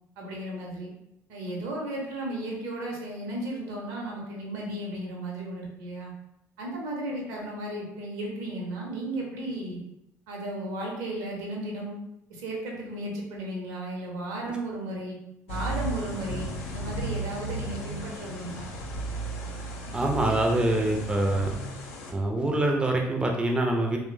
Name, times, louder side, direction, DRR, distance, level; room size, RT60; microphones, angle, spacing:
voice 1, 0.2-0.9 1.3-6.1 6.6-9.8 10.3-12.0 12.3-15.2 15.5-18.7, right 1 dB, 65° right, -1 dB, 0.7 m, -34 dB
sound 1, 15.5-22.1, right 2 dB, 65° left, 0.4 m, -35 dB
voice 2, 19.9-21.5 22.1-24.0, right 1 dB, 10° right, 1 dB, 0.4 m, -25 dB
2.9 x 2.1 x 2.4 m, 0.83 s
figure-of-eight pair, 50°, 9 cm